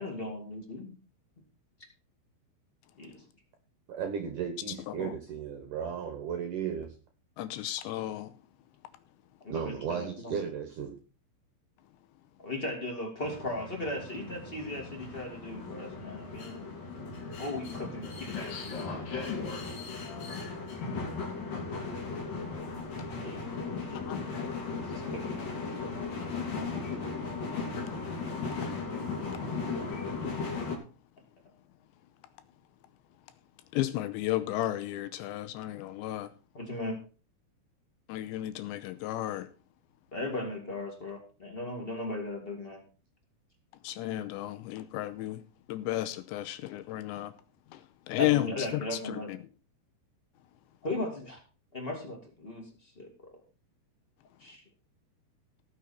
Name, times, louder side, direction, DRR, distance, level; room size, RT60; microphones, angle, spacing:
voice 1, 0.0-0.9 3.0-3.2 9.4-10.4 12.4-16.8 17.2-18.9 23.2-24.0 24.7-27.1 36.5-37.0 40.1-42.8 48.2-49.3 50.8-51.4 51.7-53.1 54.4-54.6, left 2 dB, 20° left, 1.4 m, -38 dB
voice 2, 3.9-6.9 9.5-10.9, right 7 dB, 65° right, 2.2 m, -35 dB
voice 3, 4.9-5.2 7.4-8.3 24.1-24.2 33.7-36.3 38.1-39.5 43.8-45.4 45.7-47.3 47.7-49.4, left 15 dB, 80° left, 2.9 m, -33 dB
sound 1, 13.2-30.8, left 4 dB, 50° left, 4.0 m, -37 dB
18.0 x 6.5 x 4.4 m
omnidirectional pair, 5.3 m